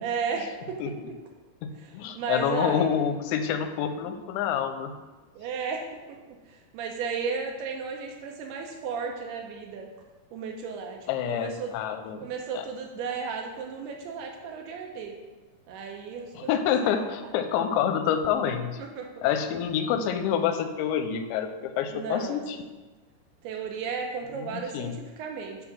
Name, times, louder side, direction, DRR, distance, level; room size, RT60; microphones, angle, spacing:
voice 1, 0.0-0.8 1.8-2.9 5.4-5.9 6.5-9.9 10.3-11.8 12.2-15.1 15.7-17.2 18.8-19.3 21.9-22.4 23.4-25.6, right 5 dB, 80° right, 2 dB, 2.5 m, -34 dB
voice 2, 1.6-4.9 11.1-12.2 12.5-12.7 16.3-18.8 19.2-22.6 24.3-24.9, left 8 dB, 90° left, 8 dB, 2.9 m, -27 dB
8.8 x 3.6 x 6.0 m, 1.2 s
omnidirectional pair, 5.0 m